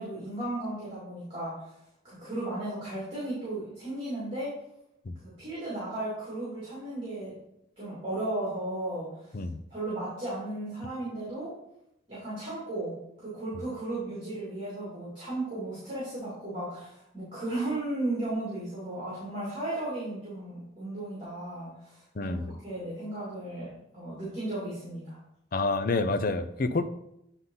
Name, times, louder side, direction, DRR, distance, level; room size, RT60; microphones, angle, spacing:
voice 1, 0.0-1.7 2.0-4.5 5.2-7.3 7.8-9.3 9.7-11.5 12.1-25.2, right 1 dB, 30° right, -9 dB, 2.9 m, -35 dB
voice 2, 22.2-22.5 25.5-26.8, left 3 dB, 50° left, 9 dB, 0.5 m, -28 dB
9.5 x 4.0 x 4.0 m, 0.80 s
head